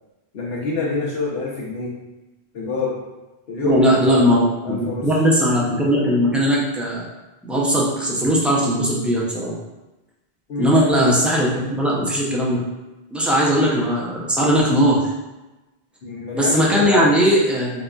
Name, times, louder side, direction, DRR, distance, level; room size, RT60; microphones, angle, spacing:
voice 1, 0.3-2.0 2.5-3.0 3.5-5.0 10.5-10.7 16.0-17.1, left 4 dB, 70° left, -4 dB, 1.1 m, -26 dB
voice 2, 3.6-7.0 7.4-9.5 10.6-12.6 13.1-15.0 16.3-17.7, equal, ahead, -5 dB, 0.3 m, -18 dB
4.0 x 2.7 x 2.3 m, 1.1 s
omnidirectional pair, 1.0 m